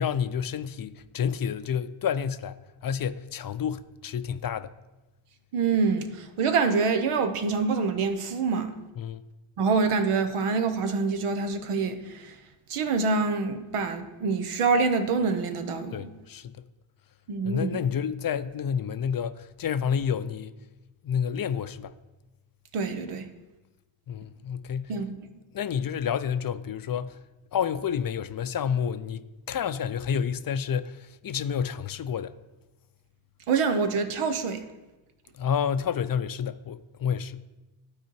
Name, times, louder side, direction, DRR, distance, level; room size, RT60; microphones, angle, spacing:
voice 1, 0.0-4.7 9.0-9.2 15.9-16.7 17.4-20.6 21.0-21.9 24.1-24.9 25.5-27.2 27.5-32.3 35.3-37.4, left 7 dB, 45° left, 0.5 m, -29 dB
voice 2, 5.5-8.8 9.6-12.3 12.7-16.1 17.3-17.9 22.7-23.3 24.9-25.3 33.5-34.6, right 4 dB, 90° right, 0.8 m, -26 dB
11.5 x 4.2 x 4.6 m
cardioid pair, 45°, 50 cm